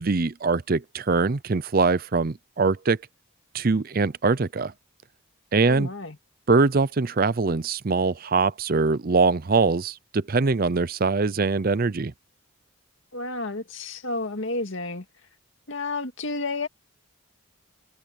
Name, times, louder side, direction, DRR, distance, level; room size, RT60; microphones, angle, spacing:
voice 1, 0.0-3.0 3.5-4.7 5.5-5.9 6.5-12.1, right 4 dB, 40° right, 0.5 m, -23 dB
voice 2, 5.6-6.2 13.1-15.0 15.7-16.7, left 2 dB, 60° left, 2.2 m, -31 dB
head